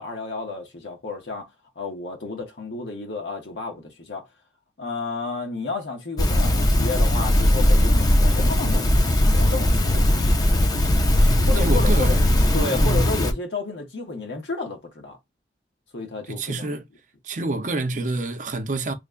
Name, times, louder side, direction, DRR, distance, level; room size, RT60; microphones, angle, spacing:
voice 1, 0.0-1.5 1.7-4.3 4.8-8.9 9.3-10.1 11.5-12.2 12.5-15.2 15.9-16.7, left 3 dB, 90° left, 1.2 m, -31 dB
sound 1, 6.2-13.3, left 1 dB, 20° left, 0.5 m, -19 dB
voice 2, 11.2-12.4 12.8-13.1 16.2-16.9 17.2-18.9, right 2 dB, 45° right, 0.5 m, -27 dB
3.2 x 2.1 x 3.6 m
head